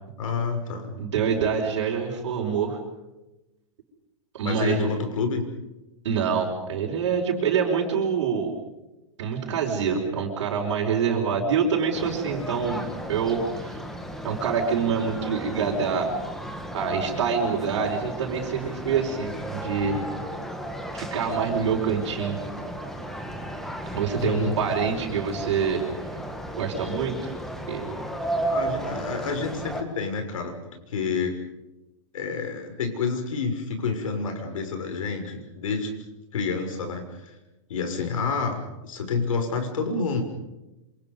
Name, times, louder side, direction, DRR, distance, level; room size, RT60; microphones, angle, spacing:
voice 1, 0.2-0.9 4.4-5.4 24.2-24.6 28.5-31.4 32.1-35.9 36.3-37.4 37.7-40.2, left 4 dB, 80° left, 5 dB, 6.1 m, -29 dB
voice 2, 1.0-2.8 4.3-4.9 6.0-8.5 9.2-13.8 14.2-16.1 16.7-20.0 20.9-22.4 23.9-25.8 26.5-27.3 27.7-27.9, right 6 dB, 60° right, -1 dB, 5.3 m, -26 dB
sound 1, 11.9-29.8, right 1 dB, ahead, 1.5 m, -34 dB
27.0 x 27.0 x 5.4 m, 1.0 s
supercardioid pair, 180°, 17 cm